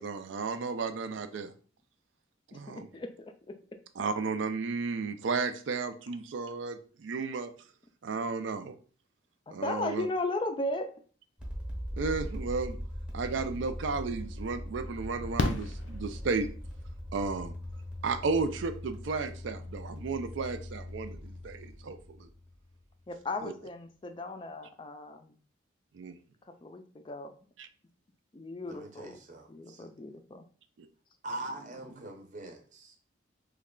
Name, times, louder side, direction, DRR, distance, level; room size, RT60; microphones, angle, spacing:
voice 1, 0.0-1.5 2.5-2.8 4.0-7.5 8.0-8.8 9.5-10.1 12.0-12.8 13.1-16.5 17.1-17.5 18.0-22.3 25.9-26.2, right 4 dB, 80° right, 10 dB, 0.4 m, -33 dB
voice 2, 2.5-3.6 9.5-10.9 23.1-25.4 26.4-27.3 28.3-29.2 29.5-30.5, left 2 dB, 25° left, 7 dB, 0.3 m, -36 dB
sound 1, 11.4-23.1, equal, 5° right, 0.7 m, -41 dB
Fireworks, 13.7-13.8 15.4-16.7 18.4-18.5 18.7-18.8, left 3 dB, 90° left, 0.5 m, -33 dB
voice 3, 28.6-29.9 31.2-32.9, right 2 dB, 40° right, 3 dB, 0.7 m, -42 dB
3.1 x 2.2 x 3.7 m, 0.41 s
head